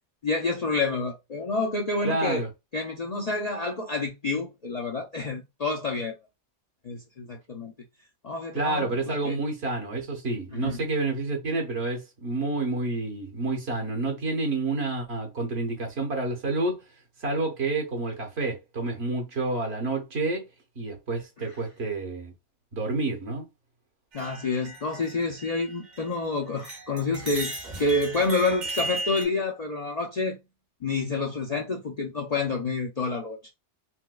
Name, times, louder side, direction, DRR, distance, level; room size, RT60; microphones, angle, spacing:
voice 1, 0.2-2.4 2.7-6.1 6.8-7.7 8.2-9.4 10.5-10.8 21.4-21.5 24.1-30.4 30.8-33.5, left 3 dB, 50° left, 0.5 m, -28 dB
voice 2, 2.0-2.5 8.5-16.8 17.2-20.5 20.8-22.3 22.7-23.4, right 3 dB, 60° right, 1.2 m, -29 dB
sound 1, 24.1-26.2 26.6-29.2, right 2 dB, 40° right, 0.9 m, -36 dB
4.4 x 2.2 x 2.3 m
omnidirectional pair, 1.3 m